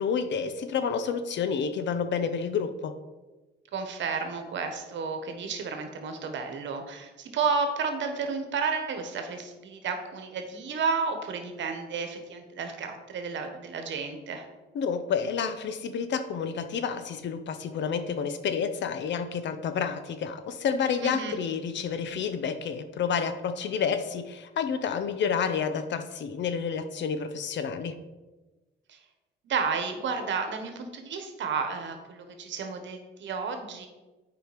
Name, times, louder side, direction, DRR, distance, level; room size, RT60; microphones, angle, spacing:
voice 1, 0.0-3.0 14.7-28.0, left 6 dB, 65° left, 10 dB, 0.8 m, -29 dB
voice 2, 3.7-14.4 21.0-21.3 28.9-29.0 29.4-33.9, right 5 dB, 65° right, 6 dB, 1.3 m, -32 dB
7.9 x 5.1 x 5.1 m, 1.2 s
cardioid pair, 90°, 20 cm